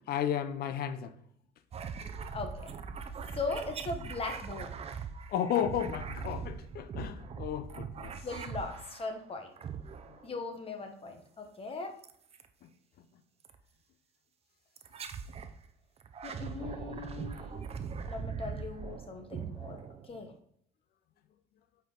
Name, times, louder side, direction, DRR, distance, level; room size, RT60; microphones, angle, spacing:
voice 1, 0.1-1.1 5.3-8.1, left 9 dB, 65° left, 0.7 m, -33 dB
sound 1, 1.7-9.2 9.6-10.3 12.0-12.5 13.4-13.6 14.8-15.6 16.0-20.4, right 6 dB, 35° right, 0.6 m, -41 dB
voice 2, 2.3-2.7 3.4-4.7 6.2-6.3 8.2-9.5 10.2-11.9 16.2-17.5 18.1-19.8 20.1-20.3, left 3 dB, 35° left, 1.2 m, -39 dB
8.3 x 4.6 x 3.9 m
cardioid pair, 110°, 17 cm